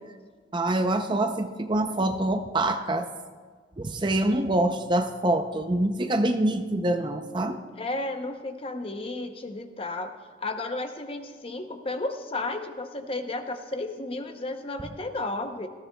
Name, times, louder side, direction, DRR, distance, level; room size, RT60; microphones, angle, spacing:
voice 1, 0.5-3.1 3.8-7.6, right 1 dB, 25° right, 7 dB, 0.5 m, -25 dB
voice 2, 7.7-10.1 10.4-15.7, left 2 dB, 30° left, 6 dB, 0.7 m, -33 dB
18.5 x 14.0 x 2.3 m, 1.5 s
head